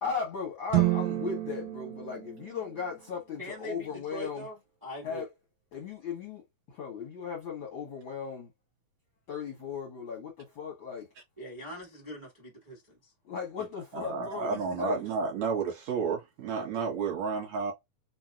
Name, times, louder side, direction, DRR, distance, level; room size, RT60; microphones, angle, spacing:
voice 1, 0.0-4.5 5.0-5.3 5.7-6.4 6.7-8.5 9.3-11.1 13.2-15.0, left 6 dB, 65° left, 1.2 m, -37 dB
sound 1, 0.7-3.1, right 16 dB, 75° right, 1.6 m, -30 dB
voice 2, 3.4-5.2 11.4-13.1, equal, 20° right, 0.5 m, -42 dB
voice 3, 13.9-17.7, right 5 dB, 60° right, 2.0 m, -31 dB
5.7 x 2.2 x 2.4 m
omnidirectional pair, 4.1 m